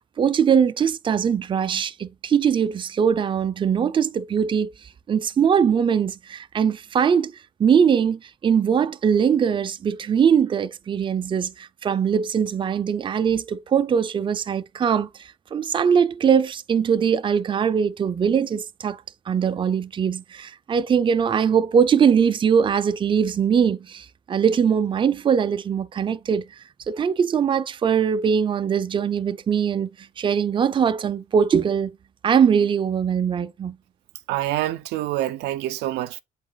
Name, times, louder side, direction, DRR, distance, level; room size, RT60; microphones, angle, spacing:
voice 1, 0.2-4.7 5.1-7.3 7.6-26.5 26.9-29.9 30.2-32.0 32.2-33.8, right 7 dB, 30° right, 0.5 m, -21 dB
voice 2, 34.3-36.2, right 15 dB, 85° right, 0.6 m, -26 dB
7.9 x 4.0 x 3.9 m
cardioid pair, 110°, 17 cm